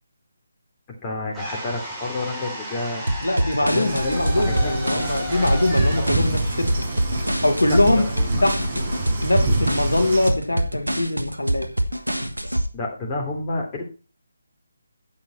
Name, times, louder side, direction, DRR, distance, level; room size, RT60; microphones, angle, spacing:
voice 1, 1.0-3.0 3.6-5.0 7.7-8.4 12.7-13.8, left 2 dB, 20° left, 0 dB, 3.2 m, -30 dB
sound 1, 1.3-7.4, equal, 5° right, 3.6 m, -34 dB
sound 2, 3.1-12.7, right 1 dB, 90° right, 1.3 m, -25 dB
voice 2, 3.2-6.8 7.4-8.0 8.4-8.8 9.2-11.7, left 1 dB, 75° left, 4 dB, 2.2 m, -22 dB
sound 3, 3.8-10.3, right 1 dB, 40° right, 5.7 m, -26 dB
10.5 x 7.7 x 4.3 m, 0.33 s
figure-of-eight pair, 150°, 0 cm